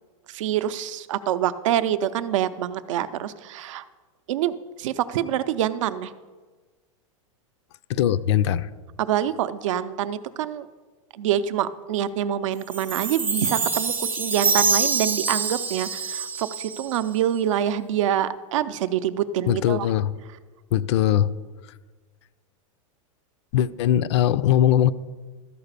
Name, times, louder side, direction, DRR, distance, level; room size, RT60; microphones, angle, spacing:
voice 1, 0.3-3.8 4.3-6.1 9.0-10.7 11.2-19.9, right 10 dB, 70° right, 13 dB, 0.6 m, -26 dB
voice 2, 7.9-8.7 19.5-20.1 20.7-21.3 23.5-24.9, left 11 dB, 55° left, 14 dB, 0.4 m, -20 dB
Chime, 12.7-17.2, right 4 dB, 10° right, 0.4 m, -25 dB
12.5 x 4.9 x 6.7 m, 1.4 s
supercardioid pair, 165°, 17 cm